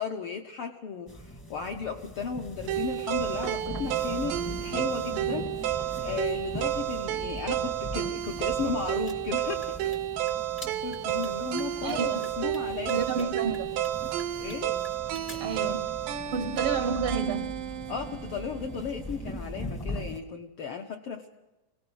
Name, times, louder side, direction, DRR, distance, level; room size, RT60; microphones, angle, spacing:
voice 1, 0.0-13.6 14.3-14.8 17.9-21.3, left 6 dB, 75° left, 4 dB, 1.3 m, -35 dB
sound 1, 1.1-20.2, equal, 20° left, 0.6 m, -41 dB
sound 2, 2.7-18.8, right 13 dB, 90° right, 2.5 m, -31 dB
voice 2, 11.8-12.2 12.9-13.7 15.4-15.8 16.3-17.5, right 5 dB, 75° right, 9 dB, 1.3 m, -30 dB
23.0 x 18.5 x 6.3 m, 1.1 s
omnidirectional pair, 3.7 m